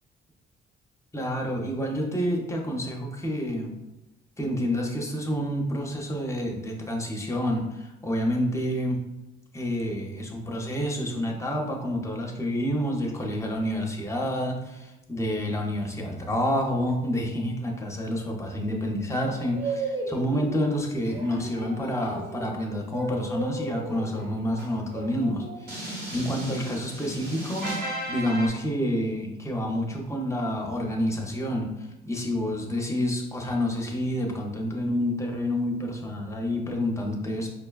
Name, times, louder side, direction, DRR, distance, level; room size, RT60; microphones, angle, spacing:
voice 1, 1.1-3.7 4.4-9.0 9.5-27.7 28.1-37.5, equal, 15° left, 0 dB, 0.7 m, -28 dB
sound 1, 19.5-20.7 21.1-28.5, right 2 dB, 50° right, 1.1 m, -35 dB
5.2 x 2.2 x 2.3 m, 0.97 s
cardioid pair, 90°, 20 cm